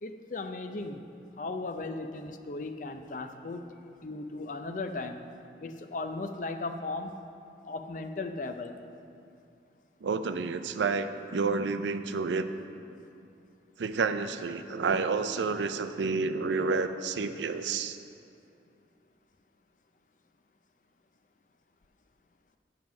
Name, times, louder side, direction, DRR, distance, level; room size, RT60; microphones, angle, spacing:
voice 1, 0.0-1.0 1.4-5.2 5.6-7.2 7.6-8.8, left 3 dB, 45° left, 7 dB, 0.5 m, -37 dB
voice 2, 10.0-12.5 13.8-18.0, right 4 dB, 85° right, 10 dB, 0.5 m, -30 dB
7.8 x 7.4 x 5.8 m, 2.6 s
head